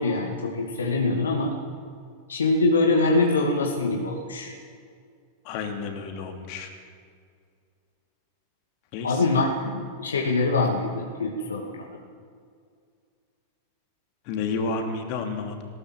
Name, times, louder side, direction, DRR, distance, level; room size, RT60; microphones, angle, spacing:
voice 1, 0.0-1.5 2.3-4.5 9.0-12.0, left 3 dB, 70° left, 1 dB, 2.3 m, -24 dB
voice 2, 5.4-6.7 8.9-9.2 14.3-15.6, left 4 dB, 45° left, 4 dB, 3.1 m, -31 dB
19.5 x 18.0 x 7.7 m, 2.2 s
figure-of-eight pair, 90°, 0 cm